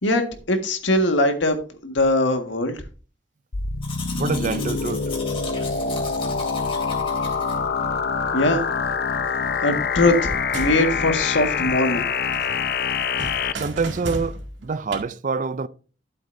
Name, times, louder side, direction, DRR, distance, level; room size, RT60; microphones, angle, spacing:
voice 1, 0.0-1.6 1.8-2.8 8.3-8.7 9.6-12.0, left 1 dB, 85° left, 1.7 m, -21 dB
sound 1, 3.5-13.5, left 5 dB, 55° left, 0.6 m, -25 dB
Domestic sounds home sounds, 3.8-7.6, left 4 dB, 30° left, 2.8 m, -37 dB
voice 2, 4.2-5.0 13.5-15.7, right 4 dB, 45° right, 0.4 m, -26 dB
sound 2, 10.2-12.1 12.3-15.0, right 1 dB, 80° right, 2.1 m, -35 dB
12.5 x 7.8 x 2.6 m
head